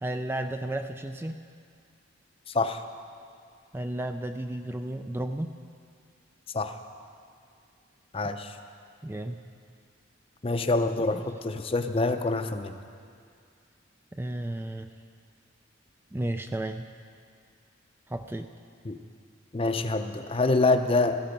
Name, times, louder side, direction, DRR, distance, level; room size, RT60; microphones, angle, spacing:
voice 1, 0.0-1.4 3.7-5.5 9.0-9.4 11.1-11.2 14.1-14.9 16.1-16.9 18.1-18.5, right 1 dB, 10° right, 7 dB, 0.3 m, -33 dB
voice 2, 2.5-2.8 6.5-6.7 8.1-8.6 10.4-12.8 18.8-19.0 19.5-21.2, left 3 dB, 30° left, 8 dB, 0.6 m, -26 dB
16.5 x 13.5 x 5.2 m, 2.3 s
head